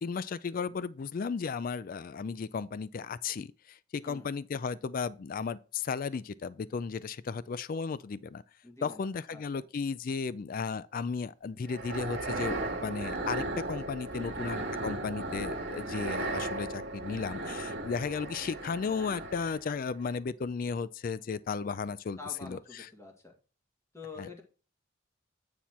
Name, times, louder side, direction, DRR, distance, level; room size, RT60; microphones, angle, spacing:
voice 1, 0.0-8.4 8.8-22.9 24.2-24.4, left 5 dB, 50° left, 0.4 m, -35 dB
voice 2, 8.6-9.6 14.1-14.4 22.2-23.3 23.9-24.4, left 3 dB, 15° left, 1.7 m, -47 dB
sound 1, 11.7-19.7, right 2 dB, 70° right, 1.9 m, -36 dB
9.3 x 4.3 x 4.3 m
head